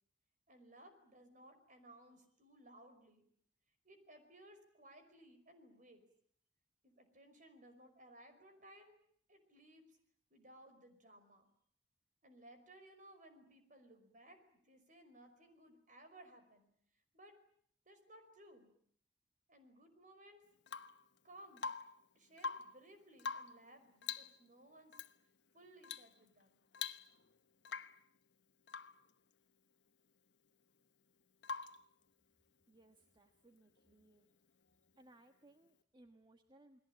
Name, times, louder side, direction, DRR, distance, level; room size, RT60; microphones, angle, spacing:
voice 1, 0.5-3.2 3.8-6.0 6.8-9.0 9.3-10.0 10.3-11.5 12.2-16.7 17.1-17.4 17.9-18.7 19.5-20.4 21.2-21.7 22.2-25.0 25.5-26.6, right 1 dB, 45° right, 7 dB, 5.4 m, -60 dB
Rain / Water tap faucet / Drip, 20.7-21.0 21.6-22.0 22.3-22.8 23.2-23.6 24.0-24.4 24.9-25.1 25.8-26.1 26.4-26.5 26.7-27.3 27.6-28.0 28.7-29.0 31.4-31.9 33.8-33.9, left 5 dB, 75° left, 1.1 m, -44 dB
voice 2, 32.7-34.3 34.9-36.8, right 2 dB, 25° right, 6 dB, 1.4 m, -65 dB
29.0 x 20.5 x 8.9 m, 0.64 s
head